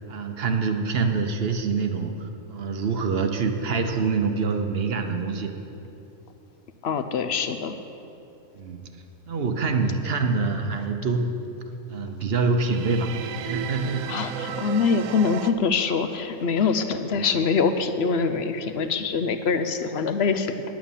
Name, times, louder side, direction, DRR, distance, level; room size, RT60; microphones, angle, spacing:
voice 1, 0.1-5.6 8.6-8.9 9.3-11.3 11.9-13.1 13.4-14.1, right 4 dB, 55° right, 6 dB, 0.9 m, -25 dB
voice 2, 6.8-7.8 14.1-20.5, left 5 dB, 60° left, 9 dB, 0.8 m, -24 dB
sound 1, 12.6-15.5, right 7 dB, 85° right, 1.1 m, -34 dB
10.5 x 8.9 x 7.1 m, 2.9 s
omnidirectional pair, 1.4 m